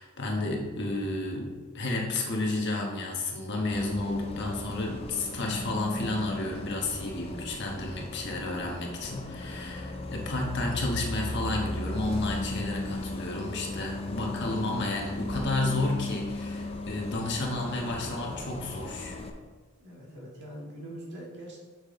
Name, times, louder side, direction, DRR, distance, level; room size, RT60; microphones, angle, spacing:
voice 1, 0.0-19.2, left 2 dB, 55° left, 0 dB, 1.2 m, -31 dB
Bus, 3.7-19.3, left 2 dB, 25° left, 0.5 m, -36 dB
voice 2, 19.8-21.6, right 1 dB, 55° right, -3 dB, 1.8 m, -43 dB
6.7 x 6.0 x 3.7 m, 1.3 s
head